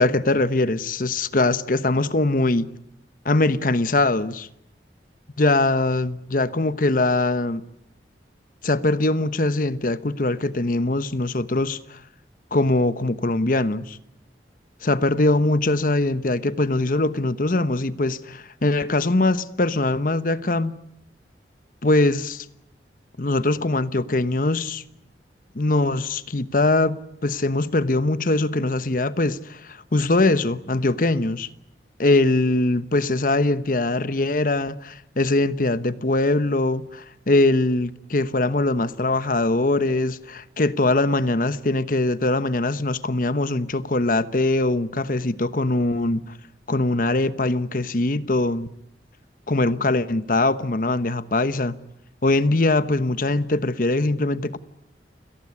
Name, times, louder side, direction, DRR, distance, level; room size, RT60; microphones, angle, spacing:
voice 1, 0.0-2.7 3.2-4.5 5.4-7.6 8.6-12.0 12.5-14.0 14.8-20.8 21.8-22.5 23.2-24.8 25.5-31.5 32.0-46.2 46.7-48.7 49.5-51.8 52.2-54.6, left 2 dB, 50° left, 1.1 m, -22 dB
29.0 x 18.5 x 9.7 m
head